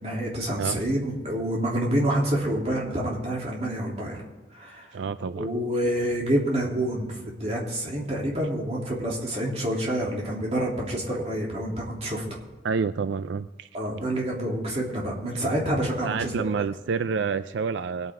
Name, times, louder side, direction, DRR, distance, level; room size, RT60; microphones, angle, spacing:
voice 1, 0.0-4.2 4.5-4.9 5.3-12.4 13.7-16.3, right 1 dB, 35° right, -3 dB, 3.1 m, -27 dB
voice 2, 4.9-5.5 12.6-13.7 16.0-18.1, right 5 dB, 85° right, 12 dB, 0.4 m, -28 dB
21.5 x 9.1 x 3.7 m, 1.2 s
head